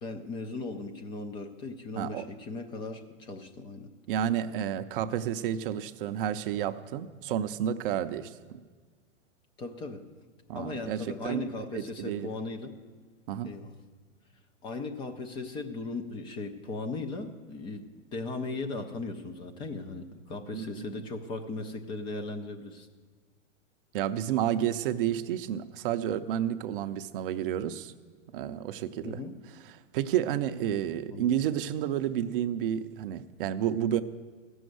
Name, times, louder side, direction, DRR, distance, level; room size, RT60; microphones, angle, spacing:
voice 1, 0.0-3.9 9.6-10.0 10.5-12.7 13.4-13.8 14.6-17.9 18.1-22.9 29.0-29.4 31.1-31.4, left 3 dB, 15° left, 7 dB, 0.4 m, -37 dB
voice 2, 4.1-8.6 10.5-12.3 13.3-13.5 20.5-21.0 23.9-27.9 28.3-29.2 29.9-34.0, right 10 dB, 45° right, 10 dB, 0.6 m, -31 dB
15.5 x 6.3 x 7.8 m, 1.5 s
hypercardioid pair, 135°, 39 cm